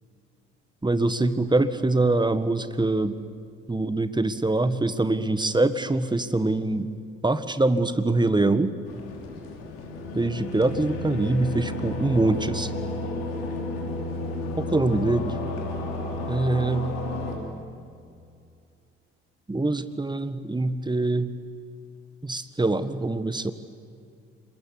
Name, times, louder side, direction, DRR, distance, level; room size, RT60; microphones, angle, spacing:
voice 1, 0.8-3.2 3.7-6.9 7.2-8.7 10.1-12.7 14.6-15.4 16.3-16.9 19.5-21.3 22.2-23.5, right 2 dB, 15° right, 12 dB, 1.7 m, -24 dB
sound 1, 8.8-17.4, left 2 dB, 75° left, 3.3 m, -32 dB
27.0 x 22.0 x 9.7 m, 2.4 s
figure-of-eight pair, 45°, 30 cm